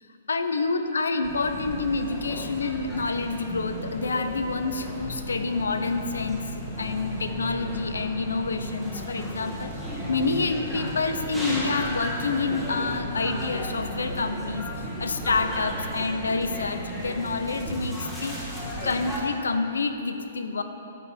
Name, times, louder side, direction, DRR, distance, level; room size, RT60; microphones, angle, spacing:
voice 1, 0.3-6.4 6.8-9.7 10.1-18.4 18.8-20.6, left 3 dB, 75° left, 7 dB, 0.6 m, -28 dB
sound 1, 1.2-19.2, equal, ahead, 2.0 m, -34 dB
10.0 x 4.5 x 6.7 m, 2.7 s
figure-of-eight pair, 120°, 0 cm